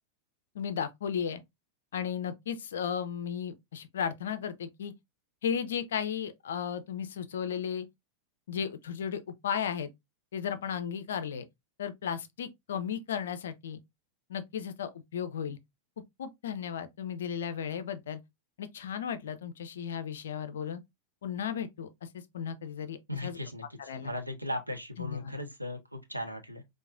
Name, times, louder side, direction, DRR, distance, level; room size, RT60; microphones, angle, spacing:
voice 1, 0.5-1.4 1.9-4.9 5.4-7.9 8.5-9.9 10.3-11.4 11.8-13.8 14.3-15.6 16.2-18.2 18.6-20.8 21.2-23.4 23.8-24.1 25.0-25.3, left 8 dB, 60° left, 0.4 m, -35 dB
voice 2, 23.1-26.6, left 1 dB, 90° right, 0.7 m, -37 dB
4.5 x 2.1 x 2.5 m
figure-of-eight pair, 90°, 0 cm